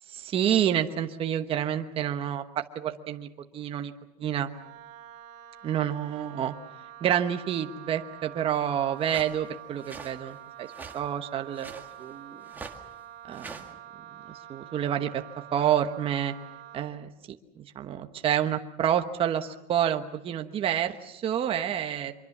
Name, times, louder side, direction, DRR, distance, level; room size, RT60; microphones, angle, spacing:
voice 1, 0.1-3.3 3.5-3.9 4.2-4.5 5.6-6.5 7.0-10.7 10.9-12.4 13.2-13.6 14.3-15.2 15.5-16.3 16.7-22.1, right 10 dB, 25° right, 6 dB, 1.2 m, -28 dB
Wind instrument woodwind instrument, 4.4-16.9, right 11 dB, 50° right, 2.1 m, -47 dB
sound 1, 9.0-9.3 9.8-10.2 10.7-11.0 11.5-11.9 12.5-12.8 13.3-13.7, right 4 dB, 10° right, 1.9 m, -43 dB
25.0 x 23.5 x 7.3 m, 0.85 s
cardioid pair, 165°, 21 cm